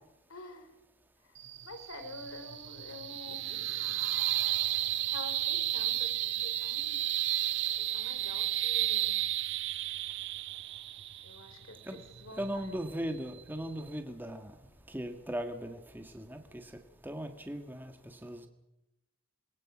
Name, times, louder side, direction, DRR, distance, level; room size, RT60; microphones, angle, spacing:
voice 1, 0.3-0.7 1.2-1.4 1.6-3.5 5.1-7.0 7.8-9.2 11.2-12.7, left 2 dB, 85° left, 9 dB, 3.2 m, -48 dB
sound 1, 1.4-14.0, right 14 dB, 55° right, 0.9 m, -33 dB
voice 2, 12.4-14.6 14.9-16.7 17.0-18.5, equal, 10° right, 6 dB, 1.5 m, -38 dB
27.0 x 21.5 x 6.1 m, 0.90 s
head